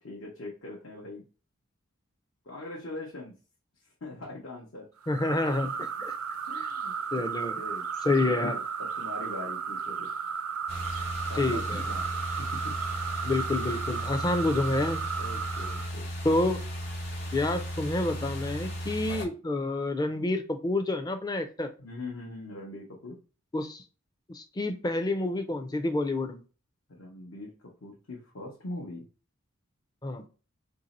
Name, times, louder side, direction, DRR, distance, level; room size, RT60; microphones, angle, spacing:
voice 1, 0.0-1.2 2.4-3.3 4.0-4.9 6.5-7.9 8.3-10.1 11.3-12.1 12.4-12.7 15.2-16.1 21.8-23.2 26.9-29.0, left 2 dB, 70° left, -3 dB, 0.9 m, -42 dB
sound 1, 5.0-15.9, right 6 dB, 85° right, 0.4 m, -34 dB
voice 2, 5.1-5.7 6.0-6.1 6.5-6.7 7.1-7.5 8.0-8.6 11.4-11.8 13.2-15.0 16.2-16.6 17.3-21.7 23.5-23.8 24.3-26.4 30.0-30.3, left 2 dB, 20° left, 7 dB, 0.4 m, -28 dB
sound 2, 10.7-19.2, equal, 45° left, 1.0 m, -36 dB
2.9 x 2.7 x 4.0 m, 0.35 s
head